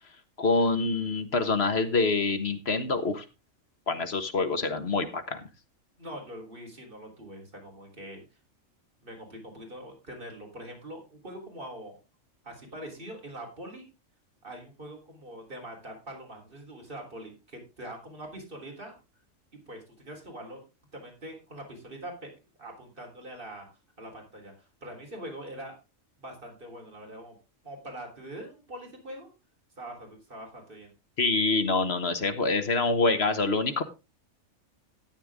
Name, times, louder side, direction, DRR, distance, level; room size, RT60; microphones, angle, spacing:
voice 1, 0.4-3.2 3.9-5.4 31.2-33.8, left 3 dB, 50° left, 9 dB, 1.6 m, -26 dB
voice 2, 6.0-8.2 9.0-12.0 12.4-13.9 14.4-19.0 19.7-20.6 20.9-22.3 22.6-23.7 24.0-24.5 24.8-25.7 26.2-27.4 27.6-29.3 29.8-30.9, right 1 dB, 40° right, 1 dB, 4.1 m, -43 dB
13.5 x 8.9 x 3.6 m, 0.28 s
omnidirectional pair, 1.4 m